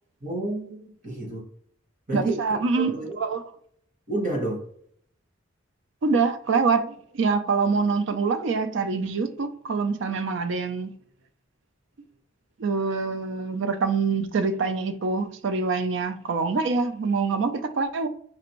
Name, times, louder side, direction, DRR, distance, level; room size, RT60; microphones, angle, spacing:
voice 1, 0.2-1.5 2.1-3.2 4.1-4.6, right 1 dB, 40° right, 1.2 m, -30 dB
voice 2, 2.1-3.4 6.0-10.9 12.6-18.1, right 4 dB, 60° right, 0.4 m, -25 dB
4.3 x 2.5 x 3.0 m
head